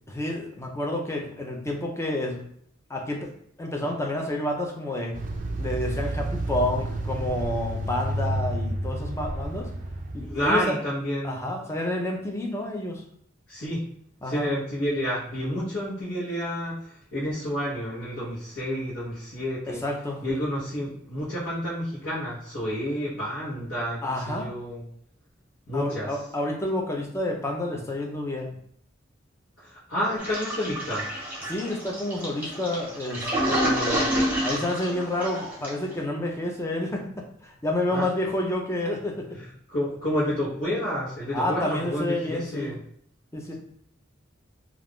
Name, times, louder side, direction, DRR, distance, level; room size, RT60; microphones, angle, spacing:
voice 1, 0.1-2.4 2.9-3.3 3.6-5.2 5.6-9.7 10.1-10.7 11.2-13.0 14.2-14.5 19.7-20.2 24.0-24.5 25.7-28.6 31.5-34.0 34.4-39.4 41.3-42.7 43.3-43.5, left 1 dB, 15° left, 1 dB, 0.5 m, -29 dB
sound 1, 5.1-10.7, right 1 dB, 40° right, 0.3 m, -30 dB
voice 2, 10.2-11.4 13.5-13.8 14.2-19.8 20.2-24.8 25.7-26.1 29.6-31.1 37.9-38.0 39.3-42.8, equal, 65° left, -9 dB, 1.0 m, -30 dB
Toilet flush, 30.2-35.9, equal, 10° right, 0.9 m, -28 dB
2.4 x 2.3 x 3.5 m, 0.66 s
head